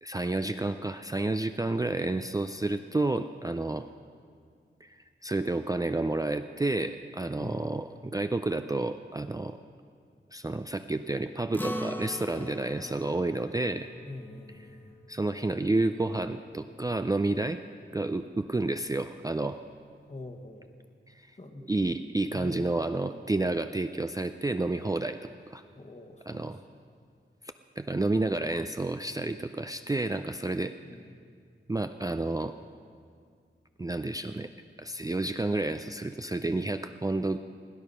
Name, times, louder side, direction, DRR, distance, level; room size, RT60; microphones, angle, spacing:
voice 1, 0.0-3.8 4.8-5.0 5.2-9.6 10.3-13.9 15.1-17.6 17.9-19.6 21.1-21.2 21.6-25.2 25.5-25.6 26.3-26.6 27.8-30.7 31.7-32.5 33.8-34.5 34.8-37.4, right 2 dB, 20° right, 8 dB, 0.4 m, -30 dB
Acoustic guitar, 11.5-16.2, equal, 10° left, 0.8 m, -40 dB
voice 2, 14.0-15.0 20.1-20.7 21.4-21.7 22.3-22.7 25.7-26.8 30.8-31.1, left 2 dB, 35° left, 3 dB, 1.3 m, -44 dB
17.5 x 9.2 x 5.6 m, 2.1 s
wide cardioid pair, 80°, 20 cm